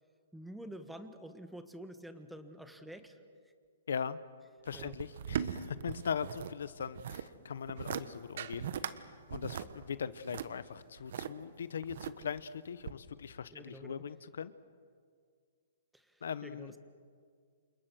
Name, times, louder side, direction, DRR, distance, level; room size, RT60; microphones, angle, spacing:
voice 1, 0.3-3.2 4.7-4.9 13.5-14.0 15.9-16.8, right 1 dB, ahead, 8 dB, 1.5 m, -48 dB
voice 2, 3.9-4.2 4.6-14.5 16.2-16.7, left 7 dB, 75° left, 15 dB, 1.0 m, -40 dB
sound 1, 4.7-6.5 6.8-7.3 7.7-8.0 8.4-8.9 9.3-11.3 11.8-12.4 12.8-12.9, right 8 dB, 60° right, 1.3 m, -39 dB
29.0 x 27.0 x 6.4 m, 2.1 s
hypercardioid pair, 155°, 0 cm